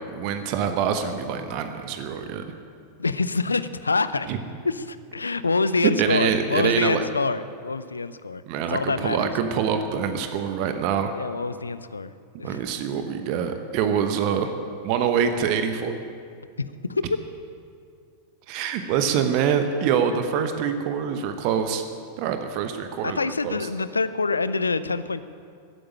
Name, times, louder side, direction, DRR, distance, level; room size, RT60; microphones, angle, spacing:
voice 1, 0.1-2.4 4.3-4.4 6.0-7.0 8.5-11.1 12.4-14.5 14.8-16.0 18.5-21.8 22.2-23.2 23.4-23.6, right 7 dB, 45° right, 8 dB, 1.0 m, -25 dB
voice 2, 3.0-4.4 4.6-8.4 8.7-9.3 11.1-12.1 12.4-12.6 16.6-17.1 23.0-25.2, left 3 dB, 75° left, 14 dB, 0.5 m, -26 dB
14.5 x 8.8 x 9.9 m, 2.3 s
figure-of-eight pair, 90°, 0 cm